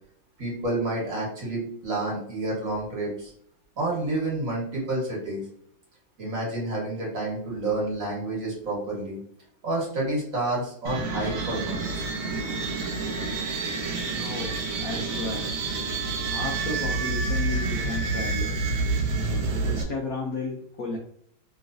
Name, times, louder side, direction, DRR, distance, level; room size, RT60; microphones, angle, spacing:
voice 1, 0.4-3.3 3.8-5.4 6.2-9.2 9.6-12.0, right 2 dB, 45° right, -4 dB, 1.4 m, -29 dB
sound 1, 10.9-19.8, right 3 dB, 90° right, 1.5 m, -28 dB
voice 2, 14.0-15.5 16.2-18.7 19.6-21.0, left 2 dB, 85° left, -1 dB, 0.7 m, -33 dB
3.1 x 3.1 x 2.5 m, 0.65 s
omnidirectional pair, 2.2 m